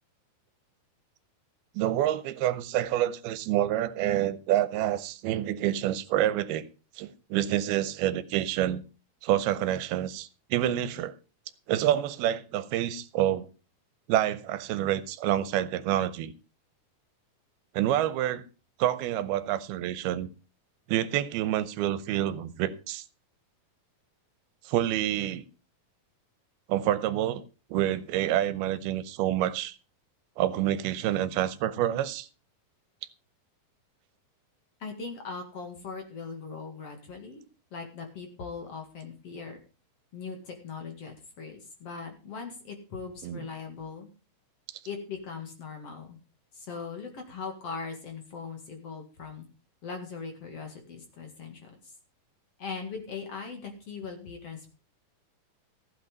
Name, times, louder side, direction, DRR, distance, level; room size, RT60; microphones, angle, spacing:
voice 1, 1.8-6.7 7.0-8.8 9.2-11.1 11.7-13.5 14.1-16.3 17.7-18.4 18.8-20.3 20.9-23.0 24.7-25.5 26.7-27.4 27.7-29.8 30.4-32.3 43.2-43.5, right 12 dB, 85° right, 2.7 m, -27 dB
voice 2, 34.8-37.4 37.7-39.6 40.1-44.1 44.9-46.2 46.5-49.5 49.8-51.7 52.6-54.7, left 5 dB, 45° left, 2.6 m, -40 dB
15.0 x 8.5 x 5.3 m
omnidirectional pair, 4.4 m